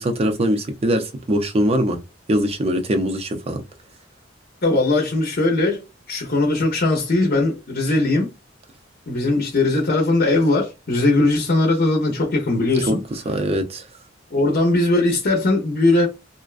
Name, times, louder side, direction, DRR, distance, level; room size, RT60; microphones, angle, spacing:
voice 1, 0.0-2.0 2.3-3.6 12.9-13.0 13.3-13.8, equal, 35° right, 0.5 m, -22 dB
voice 2, 4.6-8.3 9.1-13.0 14.3-16.1, left 2 dB, 50° left, 0.6 m, -19 dB
2.5 x 2.1 x 2.3 m
head